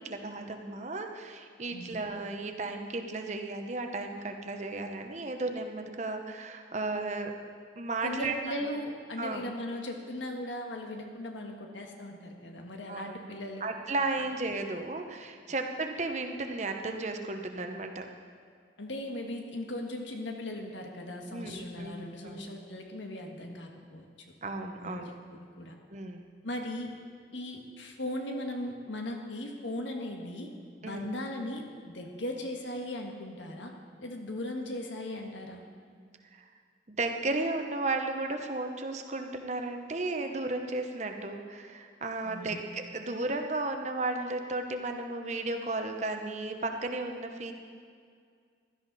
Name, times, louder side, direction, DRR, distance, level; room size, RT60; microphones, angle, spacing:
voice 1, 0.0-7.3 7.7-8.3 9.2-9.5 12.9-13.1 13.6-18.1 21.3-22.5 24.4-25.2 25.9-26.3 30.8-31.1 36.3-36.5 36.9-47.5, right 2 dB, 40° right, 5 dB, 0.9 m, -34 dB
voice 2, 8.0-13.6 18.8-24.1 24.8-25.1 25.6-25.8 26.4-26.9 27.3-30.5 30.8-33.7 34.0-35.6 42.2-42.6, left 1 dB, 90° left, 2 dB, 1.7 m, -38 dB
16.0 x 12.5 x 4.2 m, 2.2 s
head